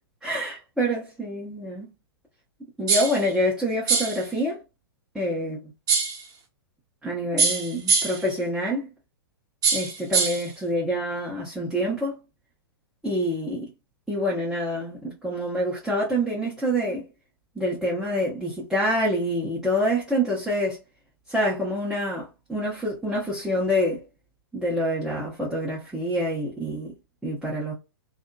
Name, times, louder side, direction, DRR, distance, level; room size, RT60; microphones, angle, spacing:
voice 1, 0.2-1.9 2.8-4.6 5.1-5.6 7.0-8.9 9.7-12.2 13.0-13.7 14.1-17.1 17.6-20.8 21.3-24.0 24.5-26.9 27.2-27.7, equal, ahead, 0.9 m, -26 dB
sound 1, 2.9-3.2 3.9-4.2 5.9-6.2 7.4-8.3 9.6-10.5, right 5 dB, 30° right, 1.1 m, -23 dB
2.7 x 2.5 x 2.3 m
hypercardioid pair, 115°, 13 cm